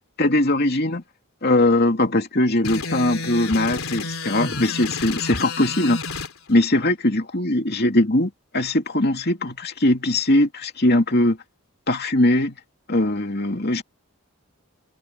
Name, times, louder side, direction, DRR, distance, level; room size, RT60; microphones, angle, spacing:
voice 1, 0.2-1.0 1.4-6.0 6.5-11.4 11.9-12.6 12.9-13.8, left 1 dB, 50° left, 2.7 m, -20 dB
sound 1, 2.6-6.3, left 3 dB, 80° left, 3.3 m, -30 dB
head